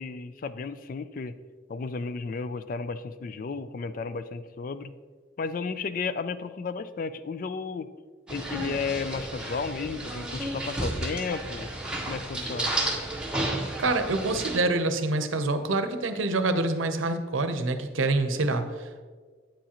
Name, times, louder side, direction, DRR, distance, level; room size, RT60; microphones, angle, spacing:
voice 1, 0.0-1.4 1.7-4.9 5.4-7.9 8.3-11.7 12.1-12.7, left 4 dB, 45° left, 13 dB, 0.3 m, -33 dB
sound 1, 8.3-14.6, right 1 dB, 5° right, 1.0 m, -32 dB
voice 2, 13.8-19.0, right 2 dB, 85° right, 8 dB, 0.7 m, -26 dB
8.9 x 7.3 x 2.9 m, 1.5 s
head